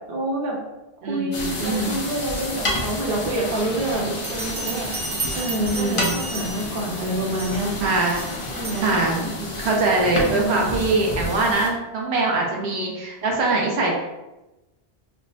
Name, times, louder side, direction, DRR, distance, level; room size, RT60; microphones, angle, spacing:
voice 1, 0.1-0.6 1.1-4.9 5.3-7.9 8.5-9.3 10.0-10.7 12.5-12.7, right 1 dB, 60° right, -2 dB, 0.9 m, -27 dB
voice 2, 1.0-1.9 5.7-6.2 7.8-8.2 8.8-9.2 9.6-13.9, right 3 dB, 90° right, -1 dB, 1.0 m, -22 dB
sound 1, 1.3-11.7, left 2 dB, 35° left, 0.6 m, -30 dB
Bell, 4.1-6.8 7.4-7.7 8.2-8.9, right 4 dB, 40° right, 0.7 m, -33 dB
3.4 x 2.1 x 3.9 m, 1.0 s
omnidirectional pair, 1.1 m